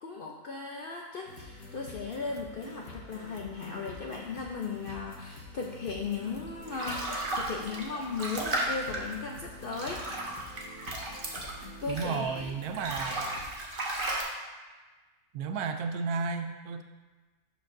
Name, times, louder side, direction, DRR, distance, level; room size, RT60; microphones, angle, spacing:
voice 1, 0.0-10.2 11.3-11.4 11.8-12.5, left 4 dB, 65° left, 0 dB, 0.5 m, -37 dB
sound 1, 1.3-13.5, left 3 dB, 85° left, 1.5 m, -47 dB
sound 2, 6.2-12.3 12.7-14.2, right 2 dB, 40° right, 1.2 m, -35 dB
voice 2, 11.9-13.3 15.3-16.8, right 5 dB, 90° right, 8 dB, 1.1 m, -33 dB
12.0 x 4.8 x 2.6 m, 1.3 s
omnidirectional pair, 1.5 m